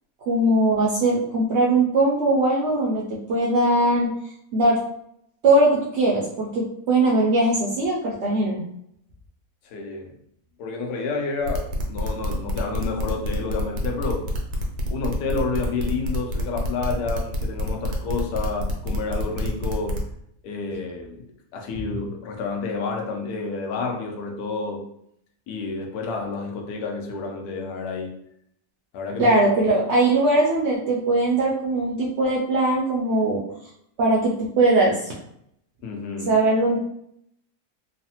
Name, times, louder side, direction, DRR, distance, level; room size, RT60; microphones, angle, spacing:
voice 1, 0.3-4.1 4.5-4.8 5.4-8.6 29.2-33.4 34.0-35.1 36.3-36.8, right 2 dB, 70° right, -4 dB, 0.6 m, -20 dB
voice 2, 9.7-10.1 10.6-14.3 14.9-20.0 20.4-21.3 21.5-24.9 25.5-28.2 28.9-29.4 35.8-36.4, left 4 dB, 80° left, 2 dB, 1.1 m, -29 dB
sound 1, 11.4-20.1, equal, 90° right, 1.2 m, -28 dB
3.1 x 2.0 x 2.7 m, 0.73 s
omnidirectional pair, 1.6 m